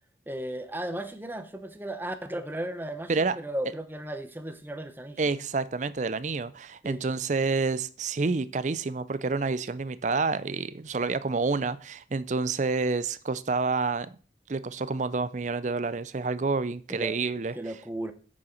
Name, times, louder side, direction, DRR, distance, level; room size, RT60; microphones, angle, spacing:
voice 1, 0.3-5.2 6.8-7.0 16.9-17.2 17.5-18.1, right 1 dB, 10° right, 10 dB, 0.7 m, -35 dB
voice 2, 5.2-14.2 14.5-17.5, right 4 dB, 40° right, 16 dB, 0.4 m, -28 dB
8.9 x 6.3 x 4.4 m, 0.40 s
head